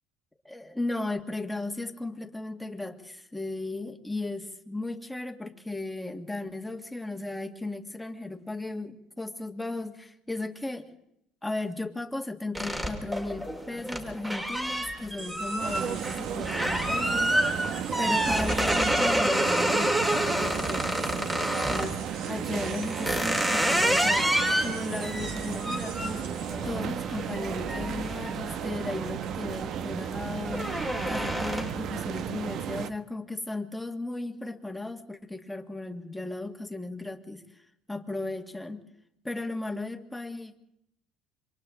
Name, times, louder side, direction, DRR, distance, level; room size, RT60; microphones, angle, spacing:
voice 1, 0.5-10.9 11.4-17.3 18.0-21.3 21.7-26.3 26.7-37.4 37.9-38.9 39.2-40.6, left 2 dB, 5° left, 4 dB, 1.7 m, -36 dB
sound 1, 12.5-21.9 22.5-29.0 29.4-29.8 30.1-31.9, equal, 10° right, 2.7 m, -28 dB
sound 2, 15.2-26.7, right 5 dB, 70° right, 5.1 m, -45 dB
sound 3, 15.6-32.9, right 8 dB, 55° right, 0.9 m, -34 dB
27.5 x 25.0 x 3.8 m, 0.78 s
cardioid pair, 120°, 0 cm